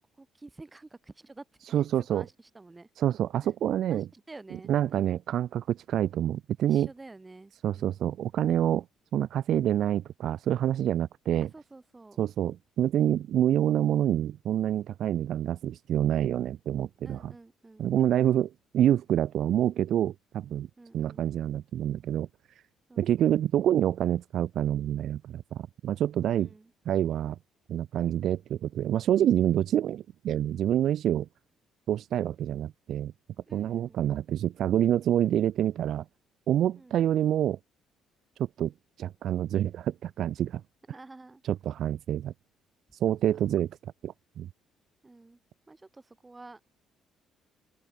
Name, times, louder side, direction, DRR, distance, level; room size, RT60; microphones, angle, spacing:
voice 1, 0.2-2.9 3.4-3.5 3.9-5.2 6.7-7.9 11.5-12.2 17.0-18.2 20.8-21.2 22.9-23.3 26.3-26.7 33.5-34.0 36.7-37.1 40.9-41.4 43.3-43.5 45.0-45.4 45.7-46.6, right 2 dB, 20° right, 6.8 m, -50 dB
voice 2, 1.7-2.2 3.0-4.1 4.7-6.9 7.6-8.8 9.1-11.5 12.2-17.3 17.8-20.7 20.9-22.3 23.0-26.5 26.9-27.4 27.7-31.3 31.9-33.1 33.5-36.0 36.5-37.6 38.4-38.7 39.0-40.6 41.5-42.3 43.0-44.5, right 11 dB, 65° right, 0.4 m, -27 dB
open air
supercardioid pair, 60°, 0 cm